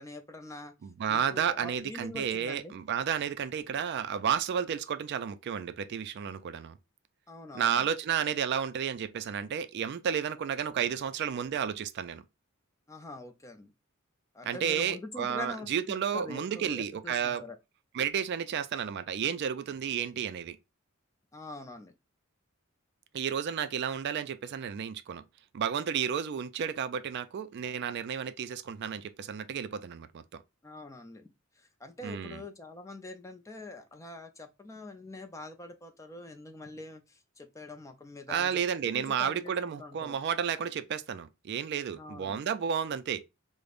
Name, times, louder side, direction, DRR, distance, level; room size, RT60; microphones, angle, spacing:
voice 1, 0.0-0.7 1.1-2.8 7.3-7.9 12.9-13.7 14.3-17.6 21.3-21.9 30.6-31.2 31.6-40.2 41.9-42.4, left 2 dB, 15° left, 0.4 m, -44 dB
voice 2, 0.8-6.7 7.5-12.2 14.4-17.4 17.9-20.6 23.1-25.2 25.5-30.2 32.0-32.4 38.3-43.2, right 8 dB, 55° right, 0.3 m, -32 dB
5.0 x 2.1 x 2.4 m
head